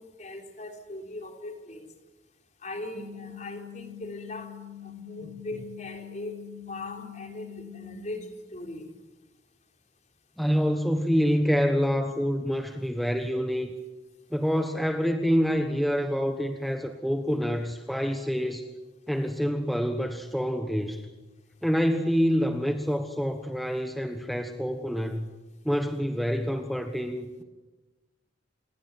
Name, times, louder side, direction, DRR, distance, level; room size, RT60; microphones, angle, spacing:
voice 1, 0.0-1.9 2.6-4.5 4.8-8.9, left 2 dB, 40° left, 4 dB, 3.7 m, -40 dB
sound 1, 2.9-8.0, left 10 dB, 70° right, 2.1 m, -44 dB
voice 2, 10.4-13.7 14.3-18.7 19.1-21.1 21.6-25.3 25.6-27.4, equal, ahead, 5 dB, 1.3 m, -27 dB
28.0 x 22.0 x 9.0 m, 1.2 s
head